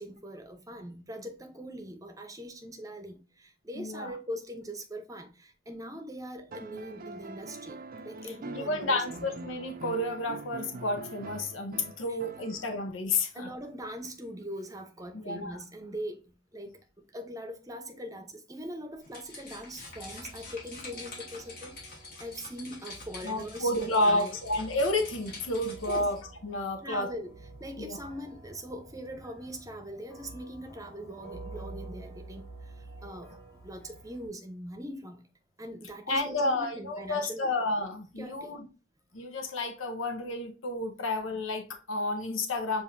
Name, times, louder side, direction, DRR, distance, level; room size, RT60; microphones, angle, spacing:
voice 1, 0.0-7.8 8.0-9.3 13.3-16.2 16.5-16.7 17.1-21.7 22.2-24.4 25.9-26.1 26.8-27.3 27.6-32.4 33.0-33.4 33.6-35.2 35.6-37.5 38.2-38.6, equal, 20° right, 0.8 m, -41 dB
voice 2, 3.7-4.1 8.5-13.5 15.1-15.6 23.2-27.1 27.8-28.1 36.1-38.7 39.1-42.8, left 2 dB, 85° left, 0.8 m, -31 dB
sound 1, 6.5-12.9 14.4-14.5, right 2 dB, 45° right, 0.5 m, -44 dB
sound 2, 19.0-26.2, left 3 dB, 50° left, 1.8 m, -46 dB
sound 3, 19.9-34.3, right 3 dB, 15° left, 1.9 m, -49 dB
7.0 x 2.6 x 2.6 m
head